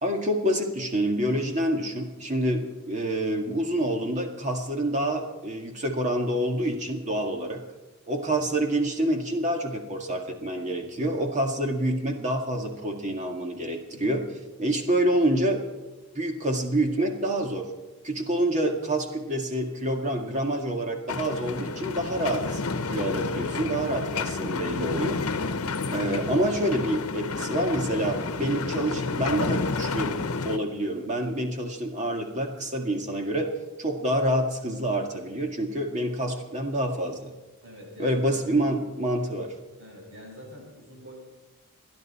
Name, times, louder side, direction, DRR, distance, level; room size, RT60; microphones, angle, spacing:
voice 1, 0.0-7.6 8.1-14.3 14.6-15.6 16.2-17.7 18.0-22.6 22.9-25.2 25.9-30.1 30.4-33.5 33.8-37.3 38.0-39.5, right 1 dB, 35° right, 3 dB, 1.9 m, -27 dB
sound 1, 21.1-30.6, left 4 dB, 85° left, 0.9 m, -30 dB
voice 2, 37.6-38.5 39.8-41.1, equal, 65° right, -2 dB, 7.2 m, -46 dB
30.0 x 10.5 x 4.3 m, 1.1 s
head